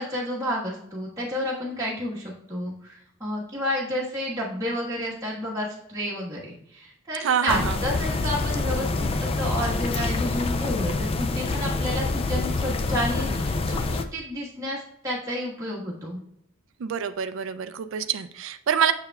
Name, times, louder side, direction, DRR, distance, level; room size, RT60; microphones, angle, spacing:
voice 1, 0.0-16.2, equal, 15° right, -7 dB, 1.3 m, -30 dB
voice 2, 7.2-7.8 16.8-18.9, right 7 dB, 60° right, 10 dB, 0.4 m, -26 dB
sound 1, 7.5-14.0, left 3 dB, 25° left, 0.3 m, -26 dB
6.8 x 6.6 x 2.3 m, 0.74 s
head